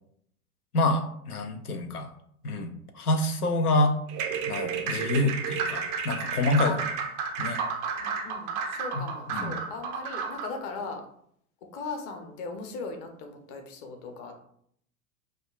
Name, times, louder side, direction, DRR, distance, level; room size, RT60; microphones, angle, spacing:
voice 1, 0.7-2.1 2.4-4.0 4.4-6.7 7.4-7.6 8.9-9.6, left 2 dB, 85° left, 6 dB, 0.6 m, -27 dB
sound 1, 4.1-10.6, right 6 dB, 30° right, 0.4 m, -32 dB
voice 2, 8.0-11.0 11.7-14.3, left 4 dB, 35° left, 4 dB, 0.7 m, -38 dB
5.1 x 2.2 x 2.3 m, 0.68 s
figure-of-eight pair, 90°, 44 cm